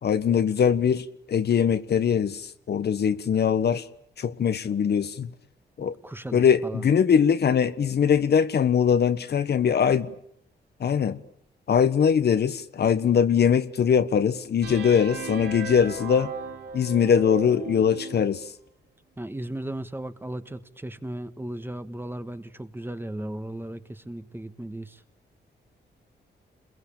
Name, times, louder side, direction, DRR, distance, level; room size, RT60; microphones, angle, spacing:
voice 1, 0.0-3.9 4.2-5.3 5.8-5.9 6.3-10.1 10.8-11.2 11.7-16.3 16.7-18.5, left 7 dB, 65° left, 1.3 m, -22 dB
voice 2, 5.8-6.9 19.2-25.0, right 1 dB, 10° right, 1.5 m, -36 dB
sound 1, 14.6-18.4, right 4 dB, 65° right, 3.0 m, -36 dB
29.0 x 22.0 x 8.7 m
cardioid pair, 95°, 18 cm